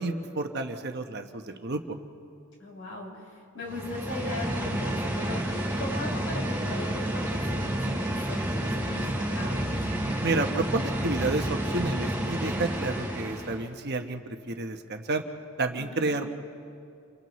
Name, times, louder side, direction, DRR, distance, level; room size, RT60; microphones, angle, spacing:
voice 1, 0.0-1.8 10.2-14.2 14.5-15.2 15.6-16.3, right 3 dB, 50° right, 5 dB, 1.0 m, -30 dB
voice 2, 2.6-9.7 15.7-16.1, left 2 dB, 65° left, -3 dB, 6.5 m, -39 dB
sound 1, 3.6-13.6, right 1 dB, 10° right, 4.9 m, -30 dB
29.5 x 29.0 x 3.1 m, 2.5 s
head